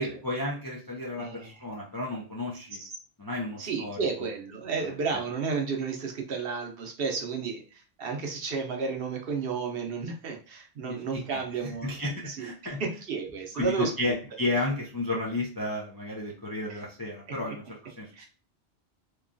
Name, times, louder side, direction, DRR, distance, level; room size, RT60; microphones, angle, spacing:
voice 1, 0.0-2.8 3.2-4.0 4.8-4.9 10.9-12.8 13.5-18.3, left 2 dB, 30° left, -4 dB, 0.4 m, -33 dB
voice 2, 1.2-1.7 2.8-2.9 3.6-11.9 12.3-14.2 16.7-16.8 17.5-17.6 18.1-18.3, right 5 dB, 65° right, 2 dB, 0.8 m, -32 dB
3.0 x 2.3 x 2.5 m, 0.36 s
omnidirectional pair, 1.1 m